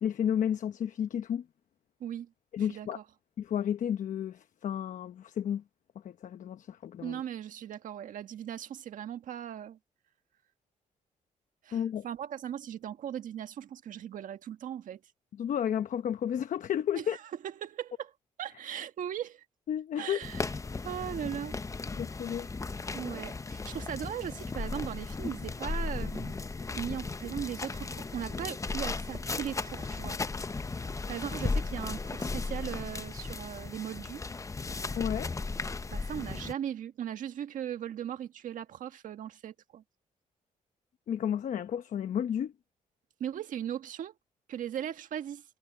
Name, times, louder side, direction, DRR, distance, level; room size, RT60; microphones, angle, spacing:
voice 1, 0.0-1.4 2.5-3.0 3.4-5.6 6.0-7.2 11.7-12.1 15.4-17.2 19.7-20.2 21.9-22.5 35.0-35.3 41.1-42.5, left 9 dB, 70° left, 1.0 m, -32 dB
voice 2, 2.0-2.3 2.7-3.0 7.0-9.8 11.6-15.0 16.9-18.1 18.4-19.4 20.0-20.5 20.8-21.6 22.9-26.4 26.8-30.2 31.1-34.2 35.9-39.8 43.2-44.1 44.5-45.4, right 10 dB, 75° right, 1.6 m, -38 dB
sound 1, 20.2-36.5, left 3 dB, 25° left, 0.7 m, -36 dB
cardioid pair, 85°, 14 cm